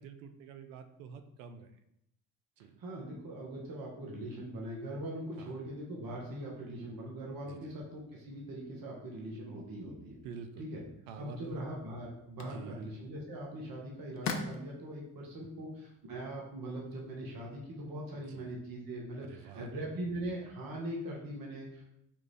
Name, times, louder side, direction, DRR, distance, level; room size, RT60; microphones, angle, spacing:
voice 1, 0.0-1.7 2.6-2.8 5.4-5.6 7.4-7.8 10.2-10.7 11.1-11.6 12.4-12.9 18.1-18.5 19.2-19.7, right 6 dB, 80° right, 9 dB, 0.6 m, -48 dB
voice 2, 2.8-10.2 10.6-10.8 11.2-21.8, right 1 dB, 55° right, -2 dB, 1.3 m, -41 dB
sound 1, 11.4-17.6, left 4 dB, 40° left, 0.7 m, -45 dB
4.9 x 2.5 x 3.4 m, 0.78 s
hypercardioid pair, 55°, 42 cm